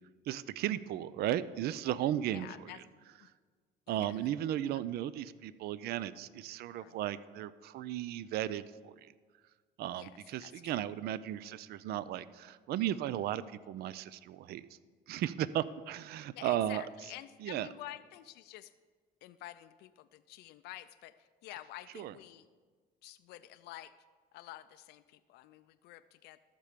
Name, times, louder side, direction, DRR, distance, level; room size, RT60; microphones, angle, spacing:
voice 1, 0.3-2.5 3.9-9.1 9.8-14.6 15.1-16.8 17.4-17.7 21.9-22.1, right 12 dB, 70° right, 17 dB, 0.4 m, -35 dB
voice 2, 2.3-2.8 3.2-3.3 3.9-4.3 6.8-7.0 10.0-10.1 10.4-10.7 16.3-18.7 19.2-22.5 23.0-24.0 24.3-26.4, left 15 dB, 80° left, 11 dB, 0.4 m, -49 dB
13.0 x 6.9 x 5.1 m, 1.5 s
cardioid pair, 110°, 17 cm